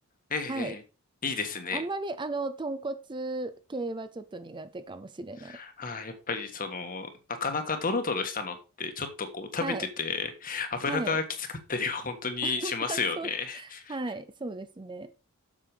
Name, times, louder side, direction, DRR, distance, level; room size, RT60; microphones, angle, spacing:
voice 1, 0.3-0.8 1.2-1.8 5.5-7.1 7.4-11.2 11.7-13.9, left 4 dB, 40° left, 1.5 m, -32 dB
voice 2, 1.7-5.6 9.6-9.9 10.9-11.2 12.4-15.1, right 2 dB, 20° right, 0.5 m, -35 dB
7.7 x 6.8 x 4.9 m
head